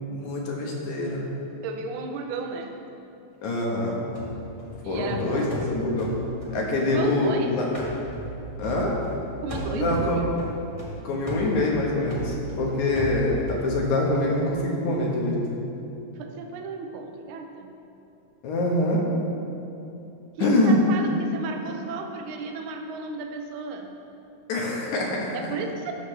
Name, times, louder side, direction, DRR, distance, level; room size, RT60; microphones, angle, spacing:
voice 1, 0.1-1.2 3.4-4.0 4.9-6.1 6.5-7.7 8.6-9.0 9.7-10.2 11.0-15.6 18.4-19.0 20.4-20.8 24.5-25.3, left 2 dB, 80° left, -2 dB, 2.6 m, -25 dB
voice 2, 1.6-2.7 4.8-5.6 6.9-7.6 9.4-10.3 16.1-17.7 20.4-23.9 25.3-25.9, right 4 dB, 80° right, 4 dB, 1.2 m, -33 dB
sound 1, 4.1-7.4 7.7-9.2 9.5-13.6, equal, 35° left, 0.5 m, -36 dB
13.5 x 6.6 x 3.3 m, 2.8 s
omnidirectional pair, 3.3 m